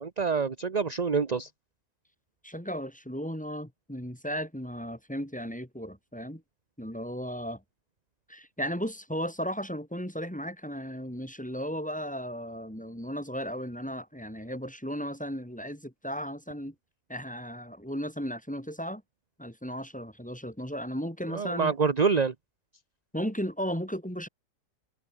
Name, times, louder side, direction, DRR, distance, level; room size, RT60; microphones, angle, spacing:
voice 1, 0.0-1.5 21.3-22.3, right 5 dB, 30° right, 1.0 m, -26 dB
voice 2, 2.4-6.4 6.8-7.6 8.3-16.7 17.1-19.0 19.4-21.7 23.1-24.3, equal, 5° left, 3.8 m, -35 dB
omnidirectional pair, 1.9 m